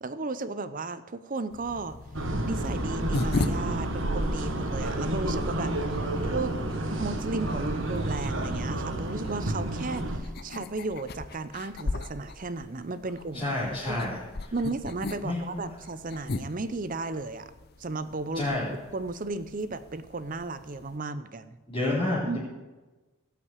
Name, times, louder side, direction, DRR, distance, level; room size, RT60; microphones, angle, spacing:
voice 1, 0.0-2.0 2.4-6.5 6.9-13.6 13.9-14.0 14.5-17.5 17.8-18.5 18.9-21.6 22.2-22.4, right 3 dB, 40° right, 13 dB, 0.6 m, -34 dB
sound 1, 1.5-21.0, left 2 dB, 45° left, 0.6 m, -39 dB
sound 2, 2.1-10.2, right 1 dB, 60° right, 1.4 m, -30 dB
voice 2, 13.3-14.2 14.4-14.5 15.2-15.4 18.3-18.7 21.7-22.4, left 1 dB, 25° left, -9 dB, 3.3 m, -29 dB
17.0 x 5.9 x 8.2 m, 1.2 s
head